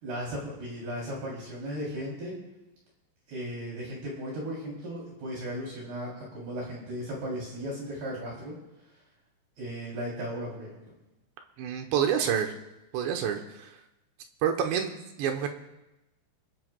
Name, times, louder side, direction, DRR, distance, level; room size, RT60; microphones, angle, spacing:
voice 1, 0.0-2.3 3.3-8.5 9.6-10.8, equal, 60° right, -4 dB, 5.2 m, -36 dB
voice 2, 11.6-12.5 12.9-13.4 14.4-15.5, right 8 dB, 80° right, 4 dB, 3.1 m, -27 dB
28.5 x 11.0 x 2.3 m, 0.97 s
omnidirectional pair, 5.2 m